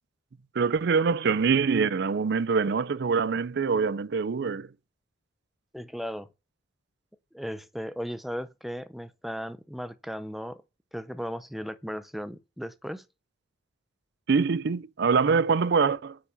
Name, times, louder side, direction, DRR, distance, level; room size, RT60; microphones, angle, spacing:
voice 1, 0.6-4.7 14.3-16.2, right 5 dB, 60° right, 0.5 m, -24 dB
voice 2, 5.7-6.3 7.3-10.6 10.9-13.0, equal, ahead, 0.6 m, -36 dB
10.0 x 4.8 x 5.6 m
head